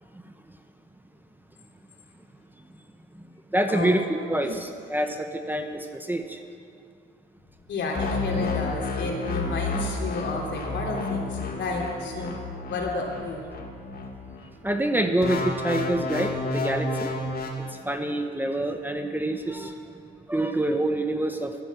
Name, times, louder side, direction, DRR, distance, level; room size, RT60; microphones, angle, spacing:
voice 1, 3.5-6.4 14.6-17.1 17.8-19.8 20.3-21.6, right 1 dB, 10° right, 6 dB, 0.9 m, -26 dB
voice 2, 7.7-12.4 12.7-13.5, left 3 dB, 65° left, -1 dB, 3.3 m, -31 dB
sound 1, 7.9-14.5 15.2-17.5, left 2 dB, 50° left, 2.3 m, -30 dB
15.0 x 10.0 x 7.3 m, 2.3 s
cardioid pair, 90°, 20 cm